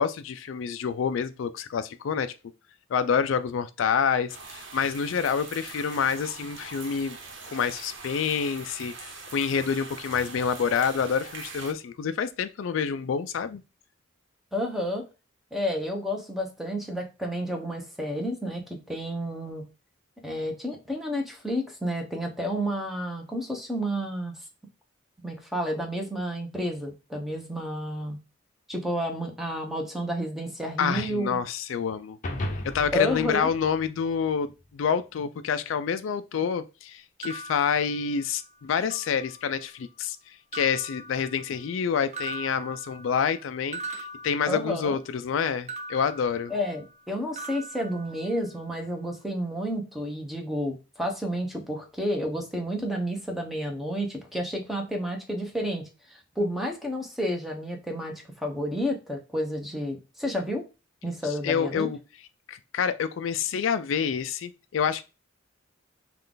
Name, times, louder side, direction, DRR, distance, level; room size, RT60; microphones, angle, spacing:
voice 1, 0.0-2.3 2.9-7.2 7.5-13.6 30.8-32.2 32.6-46.5 61.2-62.0 62.5-65.0, left 6 dB, 70° left, 0.4 m, -28 dB
sound 1, 4.3-11.7, right 4 dB, 65° right, 1.1 m, -43 dB
voice 2, 14.5-15.0 15.5-19.6 20.2-24.3 25.2-28.2 28.7-31.4 32.9-33.5 44.5-45.0 46.5-60.7 61.0-61.9, equal, ahead, 0.9 m, -30 dB
sound 2, 32.2-34.7, left 1 dB, 40° left, 0.7 m, -36 dB
sound 3, 37.2-38.5 38.9-39.7 40.5-41.8 42.1-45.1 45.7-47.1 47.4-48.7, right 2 dB, 35° right, 0.6 m, -42 dB
5.4 x 2.4 x 3.8 m
head